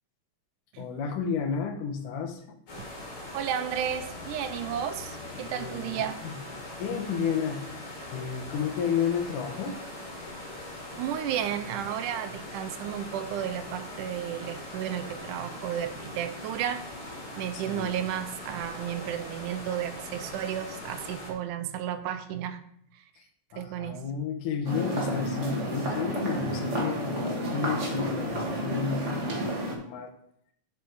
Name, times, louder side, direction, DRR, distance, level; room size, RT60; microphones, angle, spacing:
voice 1, 0.8-2.6 5.4-6.4 6.8-9.8 17.5-17.9 23.2-23.3 23.5-30.1, left 6 dB, 80° left, 5 dB, 2.4 m, -32 dB
sound 1, 2.7-21.3, left 1 dB, 45° left, 3.1 m, -41 dB
voice 2, 3.3-6.2 11.0-22.6 22.9-23.0 23.6-24.1, right 10 dB, 80° right, 10 dB, 2.1 m, -33 dB
sound 2, 24.6-29.7, right 1 dB, 40° right, 1.1 m, -31 dB
7.1 x 6.1 x 4.7 m, 0.70 s
omnidirectional pair, 3.7 m